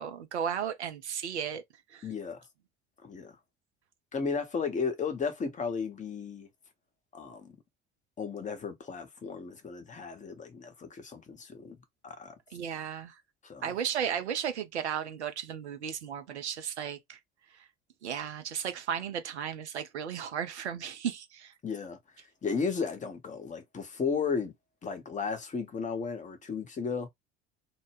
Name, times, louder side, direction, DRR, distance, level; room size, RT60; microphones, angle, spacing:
voice 1, 0.0-1.6 1.9-2.1 12.5-13.1 13.6-17.2 18.0-21.5, right 8 dB, 80° right, 0.5 m, -34 dB
voice 2, 2.0-2.4 3.0-3.3 4.1-6.5 7.1-7.6 8.2-11.8 12.0-12.3 13.4-13.7 21.6-22.0 22.4-24.5 24.8-27.1, left 5 dB, 20° left, 0.8 m, -34 dB
2.1 x 2.1 x 3.2 m
figure-of-eight pair, 60°, 33 cm